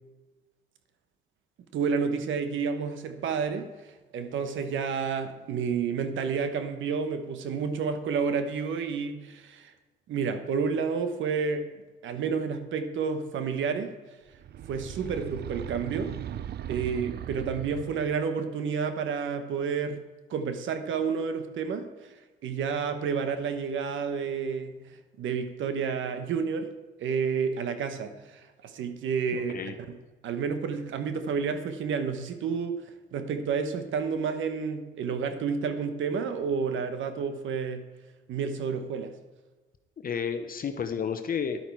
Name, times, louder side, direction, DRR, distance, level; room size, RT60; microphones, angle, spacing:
voice 1, 1.7-3.7 4.1-9.7 10.1-11.7 12.0-13.9 14.7-16.2 16.7-21.9 22.4-24.8 25.2-26.7 27.0-30.0 30.2-32.8 33.1-37.9 38.3-39.1, right 6 dB, 75° right, 8 dB, 1.1 m, -30 dB
sound 1, 14.3-18.3, right 10 dB, 55° right, 0.5 m, -38 dB
voice 2, 29.3-29.7 40.0-41.6, left 7 dB, 45° left, 7 dB, 0.9 m, -31 dB
11.0 x 8.3 x 4.6 m, 1.2 s
cardioid pair, 90°, 20 cm